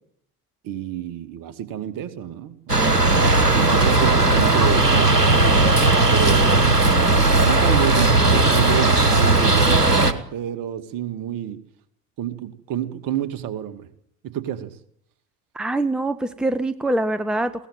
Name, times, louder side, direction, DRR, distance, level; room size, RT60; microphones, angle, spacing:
voice 1, 0.6-7.1 7.4-11.6 12.2-13.9 14.2-14.8, right 10 dB, 45° right, 11 dB, 2.6 m, -29 dB
sound 1, 2.7-10.1, right 2 dB, 90° right, 1.5 m, -17 dB
voice 2, 15.5-17.7, right 2 dB, ahead, 12 dB, 1.2 m, -24 dB
21.5 x 18.0 x 9.2 m, 0.68 s
figure-of-eight pair, 65°, 46 cm